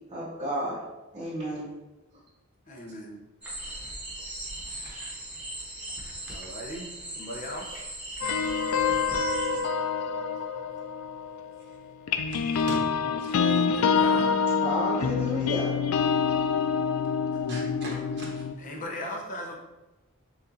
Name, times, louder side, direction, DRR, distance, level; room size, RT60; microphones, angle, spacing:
voice 1, 0.1-0.8 1.1-1.7 14.6-15.7, equal, 30° right, -9 dB, 0.8 m, -31 dB
voice 2, 2.7-3.3 6.3-7.8 13.3-14.4 17.3-17.4 18.6-19.6, left 1 dB, 40° left, 0 dB, 0.7 m, -38 dB
sound 1, 3.4-9.6, right 1 dB, 5° right, 1.2 m, -39 dB
voice 3, 4.6-5.2 6.2-6.3 11.6-11.8 12.3-12.8 13.2-13.4 17.5-18.5, right 1 dB, 55° right, -3 dB, 1.0 m, -42 dB
sound 2, 8.2-11.6 12.1-18.5, left 6 dB, 90° left, 0.3 m, -26 dB
6.9 x 2.5 x 2.6 m, 1.1 s
head